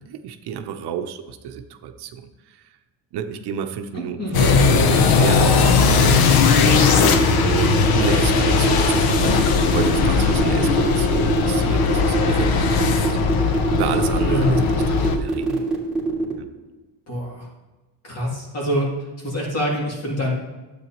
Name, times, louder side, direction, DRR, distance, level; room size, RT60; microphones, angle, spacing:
voice 1, 0.0-2.2 3.1-6.4 7.4-13.2 13.7-14.6 14.9-15.7 16.4-16.5, right 8 dB, 65° right, 7 dB, 0.8 m, -30 dB
voice 2, 3.9-4.4 14.2-14.6 17.1-17.5 18.0-18.9 19.2-20.3, left 1 dB, 35° left, -3 dB, 2.5 m, -25 dB
sound 1, 4.3-15.2, left 5 dB, 60° left, 0.8 m, -18 dB
sound 2, 7.0-16.3, right 3 dB, ahead, 2.1 m, -23 dB
12.5 x 8.1 x 3.0 m, 1.2 s
cardioid pair, 180°, 42 cm